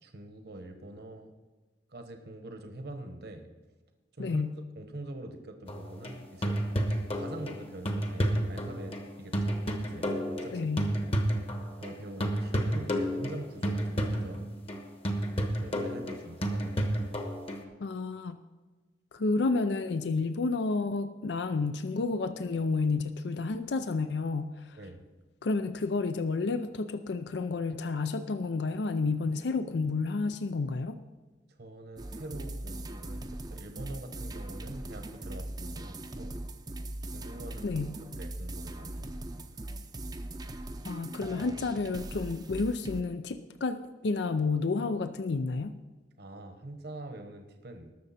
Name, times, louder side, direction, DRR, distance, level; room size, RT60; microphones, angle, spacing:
voice 1, 0.0-1.3 1.9-3.5 4.2-4.4 4.8-6.6 7.2-10.6 11.8-14.5 15.6-16.9 24.8-25.0 31.6-36.4 37.0-37.8 38.2-39.6 46.2-47.9, right 1 dB, 60° right, 6 dB, 1.2 m, -44 dB
voice 2, 4.2-4.5 10.5-10.9 17.8-18.4 19.1-24.8 25.4-31.0 37.6-38.0 40.8-45.8, left 3 dB, 65° left, 10 dB, 0.5 m, -30 dB
sound 1, 5.7-12.0 12.2-17.6, equal, 35° left, 1.2 m, -31 dB
sound 2, 32.0-43.0, right 1 dB, 20° right, 0.6 m, -40 dB
19.5 x 6.7 x 4.2 m, 1.3 s
head